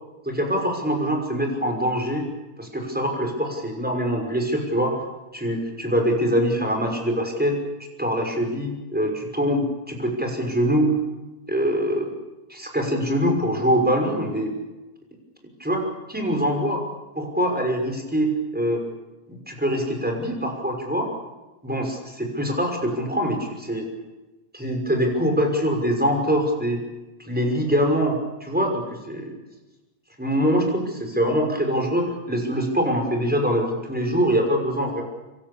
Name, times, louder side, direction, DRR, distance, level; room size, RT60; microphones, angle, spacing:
voice 1, 0.2-2.3 2.6-5.0 5.3-7.6 8.0-11.0 11.5-12.1 12.5-14.5 15.6-16.8 17.2-18.9 19.5-21.1 21.6-23.9 24.5-26.8 27.3-29.3 30.2-35.0, equal, ahead, 3 dB, 5.2 m, -24 dB
28.5 x 25.0 x 7.2 m, 1.1 s
omnidirectional pair, 6.0 m